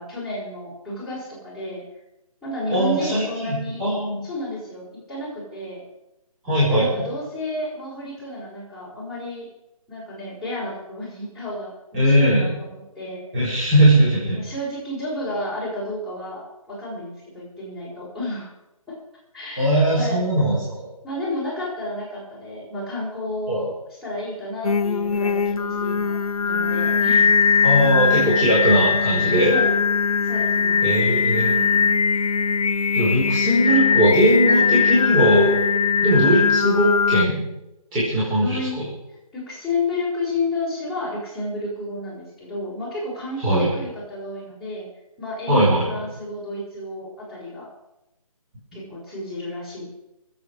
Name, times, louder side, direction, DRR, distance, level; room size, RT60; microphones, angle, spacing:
voice 1, 0.0-1.8 2.4-3.9 4.2-5.8 6.7-9.5 9.9-13.2 14.3-18.5 19.3-20.2 21.0-23.7 24.0-27.3 29.5-29.8 30.2-30.9 31.5-31.9 38.4-38.8 39.3-44.9 45.2-47.7 48.7-49.9, left 2 dB, ahead, -10 dB, 5.6 m, -31 dB
voice 2, 2.7-4.3 6.4-7.1 11.9-12.5 13.3-14.4 19.6-20.9 23.5-23.6 27.6-29.5 30.8-31.5 32.9-35.5 36.0-37.4 37.9-38.8 43.4-43.7 45.5-45.8, equal, 20° right, -8 dB, 4.6 m, -19 dB
Singing, 24.6-37.3, left 6 dB, 75° left, 0.5 m, -20 dB
23.5 x 8.2 x 4.9 m, 0.94 s
figure-of-eight pair, 150°, 19 cm